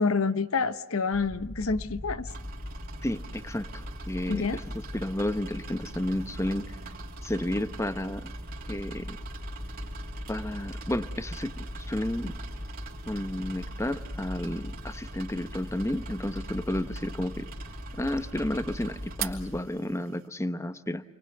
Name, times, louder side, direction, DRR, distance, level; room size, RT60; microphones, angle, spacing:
voice 1, 0.0-2.3 4.3-4.6, left 4 dB, 70° left, 13 dB, 0.9 m, -27 dB
sound 1, 1.1-19.6, left 1 dB, 40° left, 4.1 m, -40 dB
sound 2, 2.3-20.2, right 7 dB, 45° right, 3.1 m, -45 dB
voice 2, 3.0-6.8 7.2-8.3 8.7-9.2 10.3-12.4 13.1-17.5 17.9-21.0, left 1 dB, 15° left, 12 dB, 0.9 m, -32 dB
30.0 x 23.5 x 8.0 m, 0.95 s
head